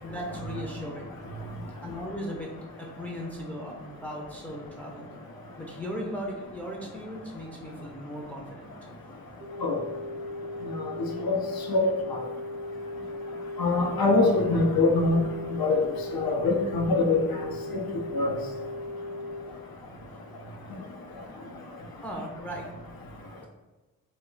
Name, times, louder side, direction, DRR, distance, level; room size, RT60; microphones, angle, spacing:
voice 1, 0.0-1.1 1.8-2.5 2.8-5.1 5.6-8.7 12.4-12.5 22.0-22.7, equal, 5° left, -1 dB, 0.4 m, -37 dB
sound 1, 9.4-19.4, left 2 dB, 60° right, 0.6 m, -37 dB
voice 2, 13.6-15.2 15.6-15.8 16.1-17.2 17.7-17.8 18.1-18.3, left 3 dB, 80° left, 1 dB, 0.6 m, -23 dB
2.2 x 2.1 x 3.7 m, 1.2 s
cardioid pair, 65°, 35 cm